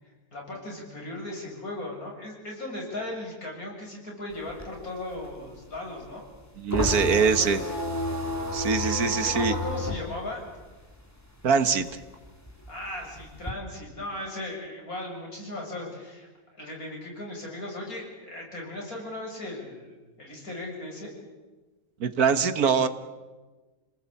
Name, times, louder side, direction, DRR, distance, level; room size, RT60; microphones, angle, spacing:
voice 1, 0.3-6.3 6.8-7.7 8.8-10.4 12.7-16.3 16.6-21.2, left 1 dB, 70° left, -1 dB, 7.4 m, -37 dB
sound 1, 4.3-11.4 11.7-13.5, left 2 dB, 10° left, 3.4 m, -32 dB
voice 2, 6.6-7.6 8.5-9.6 11.4-11.9 22.0-22.9, right 6 dB, 75° right, 10 dB, 1.8 m, -23 dB
28.5 x 19.0 x 8.5 m, 1.2 s
omnidirectional pair, 1.6 m